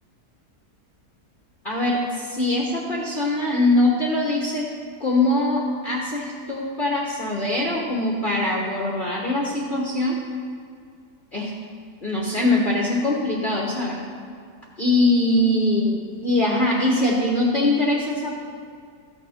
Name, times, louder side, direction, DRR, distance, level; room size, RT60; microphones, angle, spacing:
voice 1, 1.6-4.7 5.0-10.2 11.3-11.5 12.0-14.0 14.8-16.0 16.2-18.3, left 2 dB, 35° left, -4 dB, 1.4 m, -22 dB
14.0 x 6.8 x 5.7 m, 2.2 s
omnidirectional pair, 1.7 m